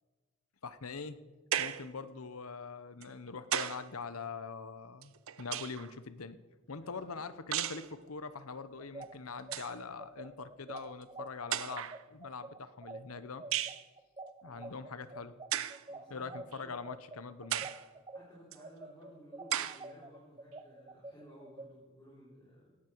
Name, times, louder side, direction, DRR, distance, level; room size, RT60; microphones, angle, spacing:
voice 1, 0.6-1.2 1.6-5.1 5.4-6.4 6.7-13.4 14.4-15.4 16.1-17.7, left 4 dB, 85° left, 13 dB, 0.9 m, -43 dB
sound 1, 1.5-1.9 3.0-3.9 5.0-5.9 7.5-7.9 9.0-9.1 9.4-9.8 10.8-10.9 11.5-12.0 13.5-13.8 15.5-15.8 16.5-16.6 17.5-17.9 18.5-18.6 19.5-19.8, right 11 dB, 70° right, 0.6 m, -35 dB
voice 2, 6.8-7.3 14.4-14.9 15.9-16.7 18.1-22.8, equal, 15° left, -6 dB, 3.4 m, -57 dB
sound 2, 8.8-18.2 18.6-21.7, right 2 dB, 20° right, 0.7 m, -47 dB
17.5 x 11.5 x 4.6 m, 1.3 s
head